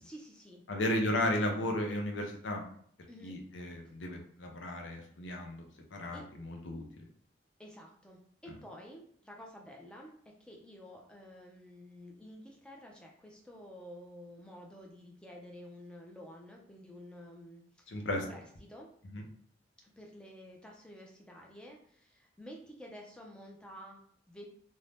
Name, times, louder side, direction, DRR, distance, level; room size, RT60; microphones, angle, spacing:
voice 1, 0.0-1.6 3.1-3.4 6.1-6.2 7.6-18.4 18.7-18.9 19.8-24.0 24.3-24.5, equal, 5° left, -1 dB, 0.4 m, -51 dB
voice 2, 0.7-2.6 3.2-6.8 17.9-18.2 19.1-19.2, left 1 dB, 80° left, 2 dB, 0.6 m, -34 dB
2.6 x 2.1 x 3.2 m, 0.62 s
head